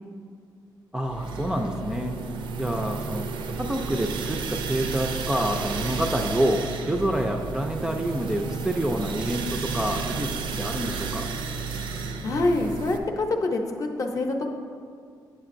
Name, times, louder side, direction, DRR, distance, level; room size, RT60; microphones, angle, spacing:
voice 1, 0.9-2.1 2.6-3.3 3.6-11.3, right 1 dB, 10° right, 3 dB, 0.3 m, -27 dB
sound 1, 1.0-13.0, right 4 dB, 85° right, 0.5 m, -32 dB
voice 2, 12.2-14.5, left 2 dB, 45° left, 3 dB, 0.6 m, -26 dB
8.8 x 6.5 x 2.5 m, 2.2 s
cardioid pair, 135°, 8 cm